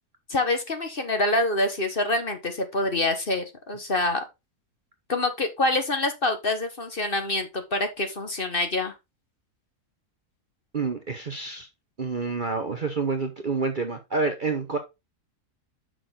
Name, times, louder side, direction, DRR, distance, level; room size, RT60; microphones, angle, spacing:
voice 1, 0.3-4.2 5.1-8.9, left 2 dB, 35° left, 1.4 m, -26 dB
voice 2, 10.7-11.7 12.0-14.8, right 4 dB, 40° right, 0.9 m, -28 dB
6.4 x 6.1 x 3.8 m
omnidirectional pair, 1.7 m